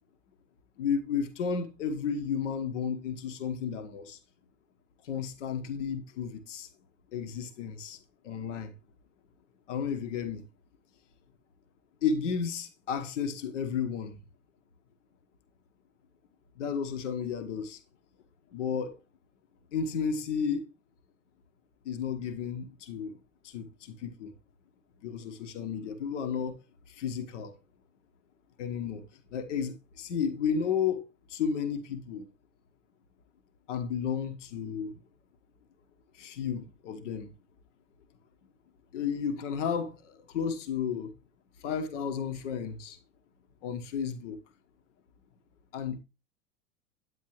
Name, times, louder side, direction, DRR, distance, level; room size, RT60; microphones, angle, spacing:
voice 1, 0.8-4.2 5.0-6.7 7.1-8.0 8.2-8.7 9.7-10.5 12.0-14.2 16.6-17.8 18.5-19.0 19.7-20.7 21.8-23.2 23.4-24.3 25.0-26.6 26.9-27.5 28.6-32.3 33.7-35.0 36.1-37.3 38.9-41.1 41.6-43.0 43.6-44.4 45.7-46.0, left 6 dB, 60° left, 1.2 m, -33 dB
9.4 x 9.1 x 3.1 m
figure-of-eight pair, 85°, 41 cm